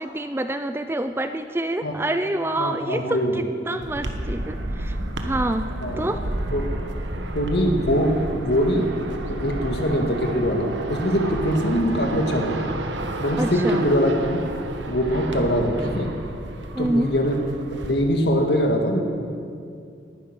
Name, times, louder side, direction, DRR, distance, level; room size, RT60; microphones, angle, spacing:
voice 1, 0.0-5.7 6.0-6.2 13.4-13.8 16.7-17.1, right 1 dB, 10° right, 9 dB, 0.4 m, -27 dB
voice 2, 2.6-3.4 5.8-6.1 6.5-6.7 7.3-9.0 9.3-12.6 13.2-14.4 14.9-16.1 16.8-17.4 17.9-19.0, equal, 60° left, 3 dB, 1.9 m, -22 dB
sound 1, 3.8-17.9, right 1 dB, 75° right, 1.2 m, -31 dB
19.5 x 9.9 x 6.0 m, 2.4 s
head